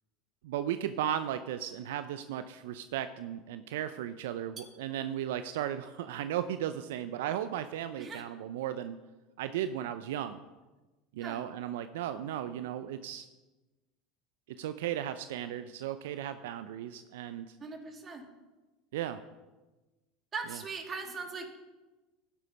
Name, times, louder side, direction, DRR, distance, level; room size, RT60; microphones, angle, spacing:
voice 1, 0.4-9.0 9.4-10.4 11.1-13.3 14.6-17.5 18.9-19.2 20.5-20.6, right 11 dB, 75° right, 11 dB, 0.5 m, -35 dB
voice 2, 17.6-18.3 20.3-21.6, right 4 dB, 30° right, 4 dB, 2.4 m, -40 dB
12.0 x 10.0 x 5.2 m, 1.2 s
hypercardioid pair, 80°, 0 cm